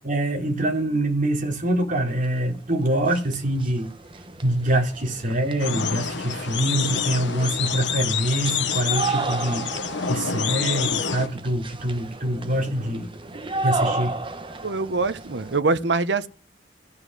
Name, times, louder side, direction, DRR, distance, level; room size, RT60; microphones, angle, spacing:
voice 1, 0.0-3.9 4.4-9.7 10.0-13.1 13.3-14.1, right 1 dB, 45° right, 3.2 m, -25 dB
sound 1, 2.5-2.6 2.9-15.6, right 3 dB, 30° right, 1.0 m, -33 dB
sound 2, 5.6-11.3, left 7 dB, 70° left, 1.0 m, -27 dB
voice 2, 14.6-16.3, right 3 dB, 70° right, 0.9 m, -24 dB
14.5 x 8.1 x 6.3 m
head